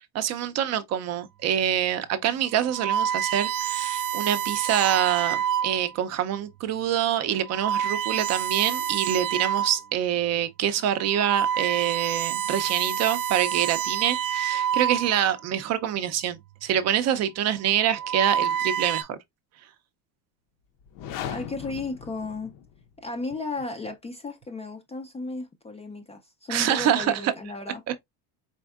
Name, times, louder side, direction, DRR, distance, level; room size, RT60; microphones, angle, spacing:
voice 1, 0.1-19.2 26.5-27.3 27.9-28.0, right 10 dB, 40° right, 0.5 m, -26 dB
sound 1, 1.7-1.9 2.5-5.9 6.6-6.8 7.4-9.9 10.3-10.4 10.9-15.4 16.4-16.8 17.7-19.0, right 9 dB, 85° right, 0.7 m, -28 dB
sound 2, 20.8-23.0, left 10 dB, 55° left, 0.6 m, -38 dB
voice 2, 21.2-22.5 23.0-27.8, left 3 dB, 15° left, 0.3 m, -34 dB
4.2 x 3.5 x 2.3 m
cardioid pair, 150°, 40 cm